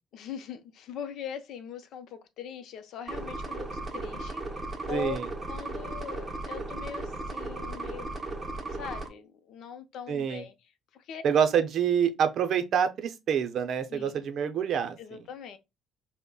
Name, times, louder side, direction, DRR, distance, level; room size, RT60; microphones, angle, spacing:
voice 1, 0.1-3.7 3.9-5.2 5.5-8.1 8.7-10.5 10.9-11.2 13.9-14.2 15.0-15.6, left 7 dB, 65° left, 0.6 m, -41 dB
sound 1, 3.1-9.1, right 2 dB, 20° right, 0.7 m, -36 dB
voice 2, 4.9-5.3 10.1-10.4 11.2-15.0, right 8 dB, 55° right, 0.6 m, -26 dB
5.2 x 2.1 x 2.2 m
cardioid pair, 135°, 0 cm